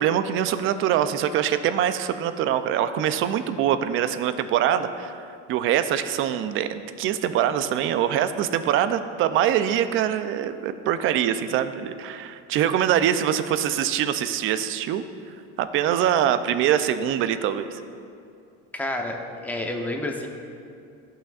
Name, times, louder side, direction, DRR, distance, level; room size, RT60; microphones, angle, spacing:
voice 1, 0.0-15.0 15.6-17.8, right 10 dB, 45° right, 11 dB, 0.4 m, -24 dB
voice 2, 18.7-20.3, left 1 dB, 5° left, 1 dB, 0.7 m, -29 dB
14.0 x 5.8 x 2.4 m, 2.4 s
cardioid pair, 135°, 29 cm